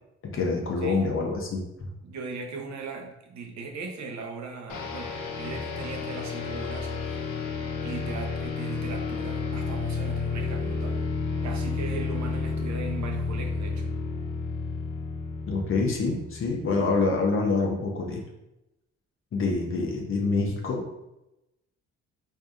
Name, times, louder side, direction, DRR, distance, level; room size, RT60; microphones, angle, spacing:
voice 1, 0.2-1.9 15.5-18.2 19.3-20.9, left 3 dB, 45° left, 0 dB, 0.7 m, -26 dB
voice 2, 2.0-7.4 7.8-11.0 11.4-13.9, right 4 dB, 65° right, 3 dB, 0.8 m, -39 dB
sound 1, 4.7-16.9, left 4 dB, 85° left, 0.7 m, -31 dB
4.8 x 2.7 x 2.3 m, 0.91 s
cardioid pair, 90°, 30 cm